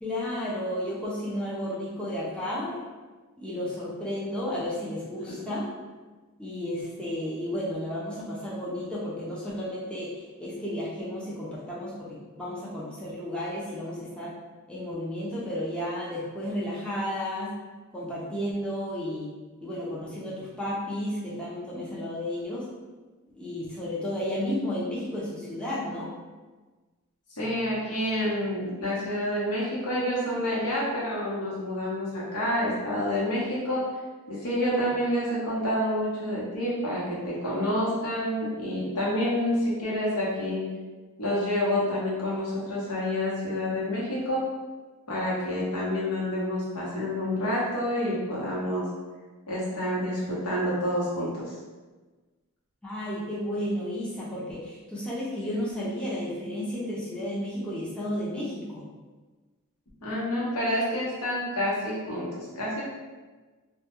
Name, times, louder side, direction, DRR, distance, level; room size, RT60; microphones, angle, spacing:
voice 1, 0.0-2.8 3.4-5.7 6.4-14.3 14.7-17.5 17.9-19.3 19.6-22.7 23.4-26.1 52.8-58.8, left 1 dB, 5° left, -8 dB, 0.4 m, -32 dB
voice 2, 27.3-33.9 34.3-40.7 41.2-44.4 45.1-48.9 49.5-51.5 60.0-62.8, left 1 dB, 85° left, -6 dB, 0.8 m, -28 dB
2.2 x 2.1 x 2.9 m, 1.3 s
head